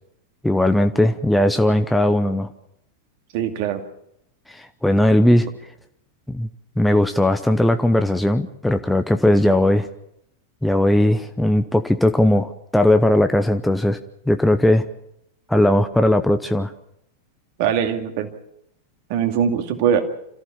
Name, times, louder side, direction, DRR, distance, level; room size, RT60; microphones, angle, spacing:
voice 1, 0.4-2.5 4.5-5.5 6.3-6.5 6.8-9.9 10.6-14.0 14.3-14.8 15.5-16.7, left 1 dB, 5° left, 7 dB, 0.9 m, -18 dB
voice 2, 3.3-3.8 17.6-18.3 19.1-20.0, right 8 dB, 45° right, 5 dB, 2.4 m, -21 dB
27.0 x 14.5 x 7.2 m, 0.78 s
figure-of-eight pair, 90°, 0 cm